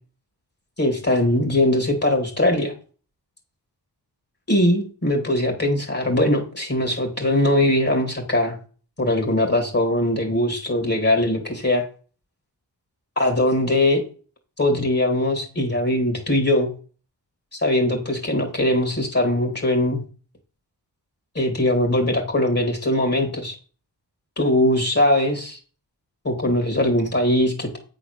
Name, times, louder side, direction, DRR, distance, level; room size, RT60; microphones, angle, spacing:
voice 1, 0.8-2.7 4.5-8.6 9.0-11.8 13.2-14.0 14.6-16.7 17.6-20.0 21.3-23.5 24.4-25.6 26.2-27.8, left 1 dB, 35° left, 2 dB, 2.6 m, -21 dB
8.2 x 4.1 x 6.6 m, 0.39 s
cardioid pair, 60°, 42 cm